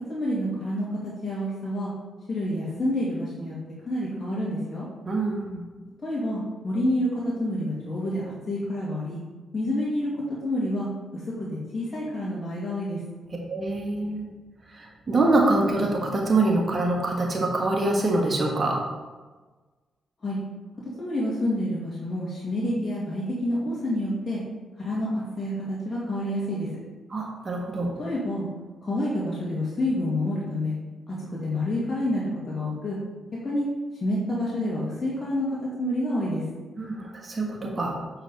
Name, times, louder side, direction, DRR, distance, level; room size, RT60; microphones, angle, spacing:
voice 1, 0.1-1.9 2.3-3.6 3.9-4.9 6.0-9.2 9.5-10.9 11.1-11.2 11.7-13.0 20.2-20.4 21.0-24.4 24.8-26.7 28.0-28.5 28.8-30.8 31.1-31.2 31.4-33.0 33.4-33.6 34.0-36.4, left 1 dB, 40° left, -7 dB, 2.2 m, -28 dB
voice 2, 5.0-5.6 13.5-14.3 14.7-18.8 27.1-27.9 36.8-38.0, right 2 dB, 40° right, -1 dB, 1.5 m, -25 dB
7.6 x 4.8 x 4.2 m, 1.3 s
hypercardioid pair, 40°, 0 cm